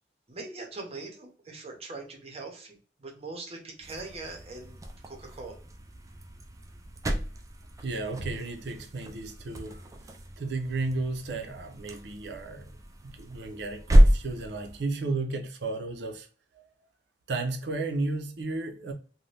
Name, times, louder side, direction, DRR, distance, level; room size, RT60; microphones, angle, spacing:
voice 1, 0.3-4.8 5.1-5.5, right 3 dB, 35° right, 0.7 m, -41 dB
sound 1, 3.8-14.9, equal, 20° right, 0.3 m, -29 dB
voice 2, 7.8-9.8 10.4-12.7 13.0-16.3 16.6-16.7 17.3-18.9, right 3 dB, 70° right, 0.6 m, -33 dB
2.6 x 2.2 x 3.2 m
head